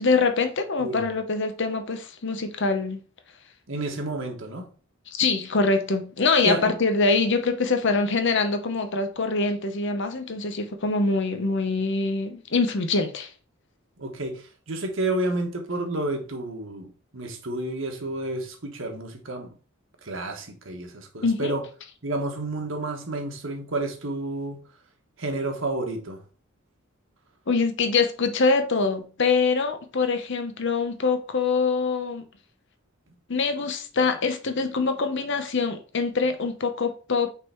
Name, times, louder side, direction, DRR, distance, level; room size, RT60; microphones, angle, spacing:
voice 1, 0.0-3.0 5.1-13.3 21.2-21.5 27.5-32.2 33.3-37.3, left 4 dB, 60° left, 0.9 m, -24 dB
voice 2, 3.7-4.7 6.4-6.7 14.0-19.5 20.0-21.6 22.0-24.6 25.2-26.2, right 2 dB, 70° right, 1.4 m, -30 dB
5.8 x 3.8 x 4.4 m
head